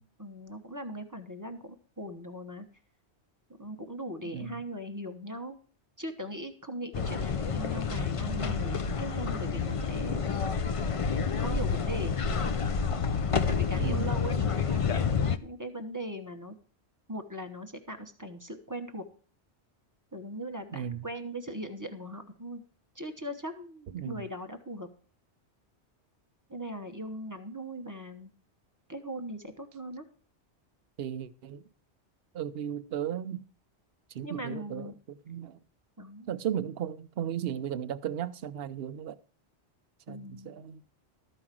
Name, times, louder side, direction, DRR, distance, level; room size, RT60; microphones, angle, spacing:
voice 1, 0.0-2.7 3.6-5.6 6.0-10.2 11.4-12.1 13.4-16.5 17.1-19.0 20.1-22.6 22.9-24.9 26.5-28.3 28.9-30.0 34.2-34.9 36.0-36.3 40.1-40.5, equal, 15° right, 1.0 m, -39 dB
voice 2, 4.2-4.6 13.7-14.1 20.7-21.1 23.9-24.3 31.0-31.6 32.3-33.4 34.1-34.9 35.3-35.6 36.3-39.2 40.1-40.8, right 9 dB, 65° right, 0.8 m, -35 dB
sound 1, 6.9-15.4, left 6 dB, 40° left, 0.5 m, -29 dB
13.5 x 4.8 x 7.5 m
omnidirectional pair, 1.2 m